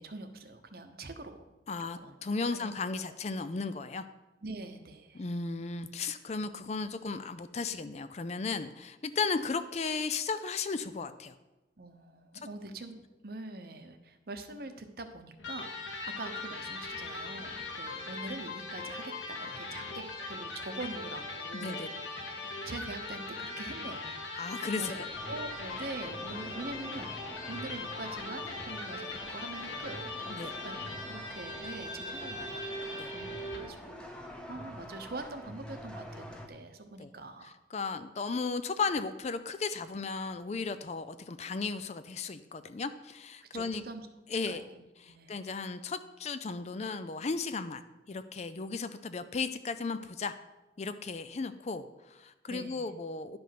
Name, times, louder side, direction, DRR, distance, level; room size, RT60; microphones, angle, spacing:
voice 1, 0.0-1.4 1.8-2.2 2.5-2.7 3.0-3.1 4.4-5.3 11.8-21.9 22.4-24.2 24.8-30.8 31.0-32.7 33.1-37.6 43.5-44.1 44.5-45.4 52.5-52.9, right 2 dB, 55° right, 7 dB, 0.9 m, -44 dB
voice 2, 1.7-4.0 5.1-11.3 21.5-21.9 24.4-25.1 30.3-30.5 32.9-33.1 37.0-37.1 37.7-43.8 44.3-44.6 45.0-50.3 50.8-53.4, left 4 dB, 35° left, 11 dB, 0.4 m, -35 dB
Electric guitar, 15.4-33.8, left 2 dB, 90° left, 1.6 m, -40 dB
sound 1, 25.1-36.5, equal, 5° left, 0.8 m, -46 dB
10.5 x 5.2 x 5.9 m, 1.1 s
head